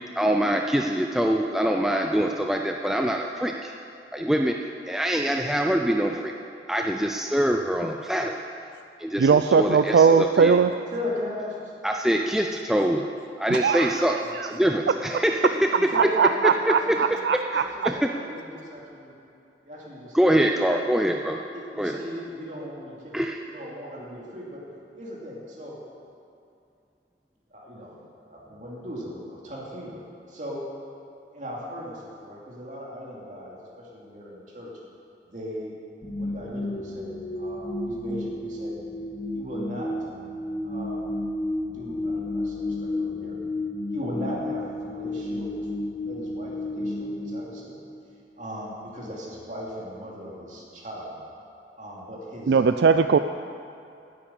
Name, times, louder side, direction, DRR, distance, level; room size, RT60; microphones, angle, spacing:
voice 1, 0.2-3.7 4.1-4.6 4.9-6.3 6.7-8.4 9.0-10.5 11.8-13.0 13.4-15.9 16.4-17.0 17.5-18.1 20.1-21.4 21.8-22.0 23.1-23.4, equal, 5° right, 2 dB, 0.4 m, -24 dB
voice 2, 9.2-10.7 13.5-14.0 14.4-14.5 15.1-15.2 15.9-17.6 52.5-53.2, right 5 dB, 70° right, 9 dB, 0.3 m, -20 dB
voice 3, 10.9-11.8 14.2-14.9 15.7-17.2 17.5-19.1 19.6-20.5 21.5-23.1 23.5-24.6 24.9-25.8 27.5-30.6 31.3-34.7 35.3-35.8 36.2-38.8 39.3-39.9 40.6-41.1 41.7-43.3 43.9-45.7 46.0-47.8 48.4-51.2 51.7-52.6, equal, 45° right, -4 dB, 2.7 m, -38 dB
sound 1, 36.0-48.2, left 1 dB, 20° left, 1.1 m, -32 dB
9.7 x 8.6 x 8.8 m, 2.6 s
head